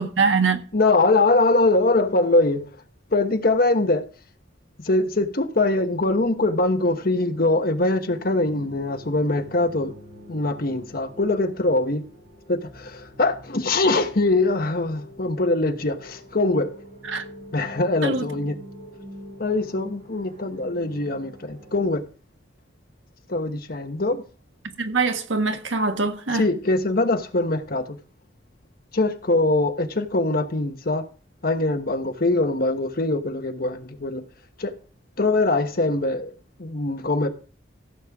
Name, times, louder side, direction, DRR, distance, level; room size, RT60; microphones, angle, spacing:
voice 1, 0.0-0.6 17.1-17.2 18.0-18.3 24.8-26.4, right 4 dB, 85° right, 1.5 m, -23 dB
voice 2, 0.7-2.7 3.1-4.1 4.8-9.9 10.3-12.1 12.5-16.7 17.5-18.6 19.4-22.0 23.3-24.2 26.3-28.0 28.9-31.0 31.4-34.3 34.6-34.8 35.2-36.3 36.6-37.3, left 2 dB, 50° left, 1.2 m, -22 dB
sound 1, 5.9-21.9, equal, 60° right, 6.5 m, -46 dB
15.5 x 7.5 x 3.6 m
head